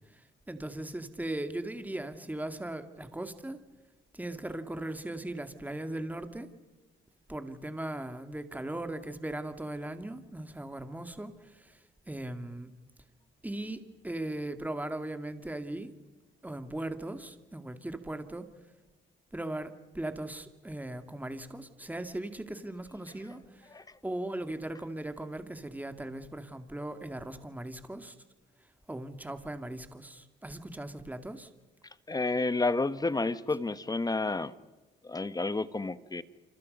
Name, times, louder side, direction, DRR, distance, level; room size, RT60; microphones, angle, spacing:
voice 1, 0.0-3.6 4.1-6.5 7.3-12.7 13.4-15.9 16.4-18.5 19.3-28.1 28.9-31.5, right 1 dB, 10° right, 8 dB, 2.1 m, -38 dB
voice 2, 32.1-34.5 35.0-36.2, left 3 dB, 20° left, 14 dB, 1.2 m, -30 dB
29.0 x 26.0 x 5.3 m, 1.2 s
cardioid pair, 90°, 20 cm